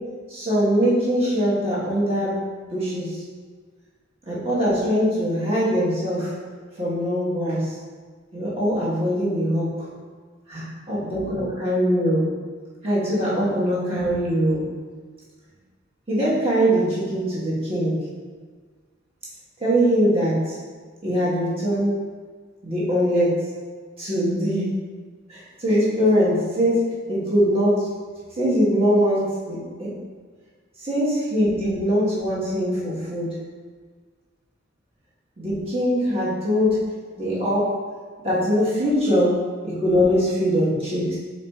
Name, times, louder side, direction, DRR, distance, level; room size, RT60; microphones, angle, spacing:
voice 1, 0.3-2.3 2.7-3.2 4.3-6.3 6.7-7.8 8.3-9.9 10.5-12.3 12.8-14.7 16.1-17.9 19.6-20.6 21.0-21.9 22.6-23.3 24.0-24.7 25.3-26.8 27.1-27.9 28.4-29.9 30.8-33.3 35.4-36.8 37.2-37.7 38.2-39.3 39.6-41.2, equal, 30° right, -8 dB, 1.2 m, -22 dB
4.8 x 4.2 x 2.3 m, 1.5 s
head